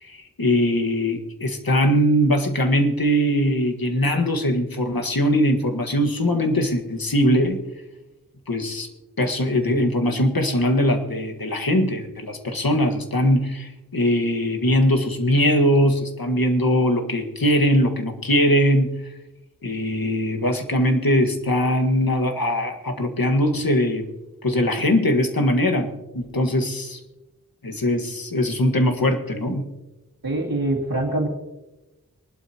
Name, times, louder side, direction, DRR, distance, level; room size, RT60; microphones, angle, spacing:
voice 1, 0.0-7.6 8.5-8.9 9.2-18.9 19.6-24.1 24.4-25.9 26.1-27.0 27.6-29.7, equal, 80° left, 4 dB, 1.8 m, -21 dB
voice 2, 30.2-31.3, right 2 dB, 85° right, -3 dB, 2.1 m, -24 dB
24.0 x 12.0 x 3.0 m, 1.0 s
wide cardioid pair, 50°, 35 cm